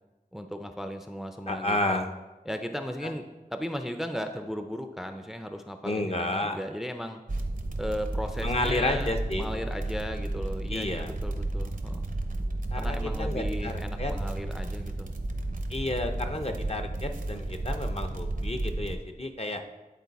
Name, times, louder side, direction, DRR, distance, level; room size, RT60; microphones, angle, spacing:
voice 1, 0.3-2.0 2.5-7.2 7.8-9.1 9.4-12.1 12.7-15.1, equal, ahead, 7 dB, 0.4 m, -36 dB
voice 2, 1.5-2.1 3.0-3.1 5.8-6.6 8.4-9.5 10.7-11.1 12.7-13.7 14.0-14.1 15.7-19.6, left 2 dB, 40° left, 5 dB, 0.6 m, -31 dB
sound 1, 7.3-19.0, right 2 dB, 65° right, 0.7 m, -32 dB
9.3 x 3.9 x 4.1 m, 1.1 s
wide cardioid pair, 40°, 15 cm